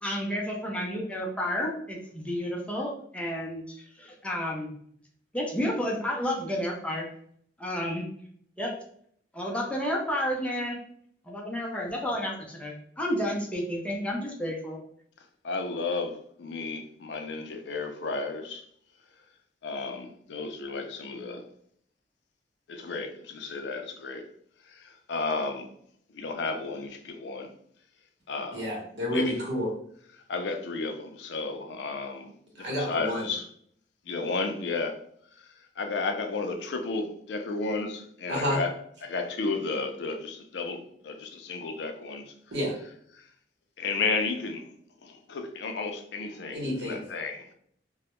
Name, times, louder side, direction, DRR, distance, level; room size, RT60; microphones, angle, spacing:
voice 1, 0.0-4.7 5.3-7.1 7.6-8.1 8.6-8.7 9.3-10.8 11.3-14.8, equal, 5° left, 0.4 m, -31 dB
voice 2, 15.4-18.6 19.6-21.4 22.7-24.3 24.7-25.7 26.1-27.5 28.3-28.7 29.1-29.4 30.3-32.3 32.6-33.5 34.1-35.0 35.8-38.7 39.0-42.3 43.8-44.7 45.0-47.5, left 3 dB, 70° left, 0.4 m, -33 dB
voice 3, 28.5-29.7 32.6-33.3 38.3-38.6 42.5-42.8 46.5-47.0, equal, 65° right, 0.9 m, -29 dB
2.2 x 2.0 x 2.9 m
head